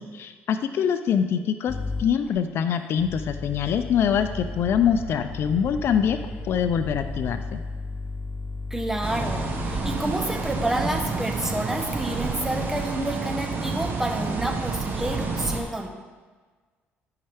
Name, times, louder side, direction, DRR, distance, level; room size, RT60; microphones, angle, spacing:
voice 1, 0.0-6.2 6.4-7.6, left 8 dB, 60° left, 10 dB, 0.4 m, -24 dB
sound 1, 1.7-2.1 3.0-9.9 11.0-12.2 12.7-13.1, left 3 dB, 40° left, 0.8 m, -35 dB
sound 2, 2.3-2.4 2.7-3.3 3.6-7.6, equal, 10° left, 2.3 m, -42 dB
voice 2, 8.7-15.9, right 1 dB, 10° right, 3 dB, 1.0 m, -29 dB
sound 3, 9.0-15.6, right 4 dB, 50° right, 1.3 m, -29 dB
12.0 x 5.6 x 3.5 m, 1.4 s
cardioid pair, 95°, 5 cm